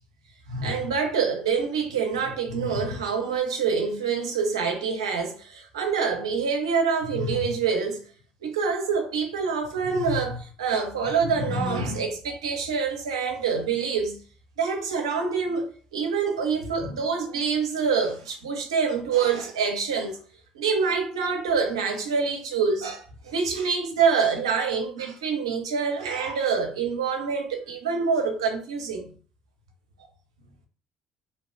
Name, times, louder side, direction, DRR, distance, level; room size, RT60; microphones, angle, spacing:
voice 1, 0.5-8.0 8.4-14.2 14.6-15.7 15.9-20.2 20.5-29.1, right 5 dB, 85° right, 0.6 m, -26 dB
2.8 x 2.1 x 3.1 m
hypercardioid pair, 55°, 3 cm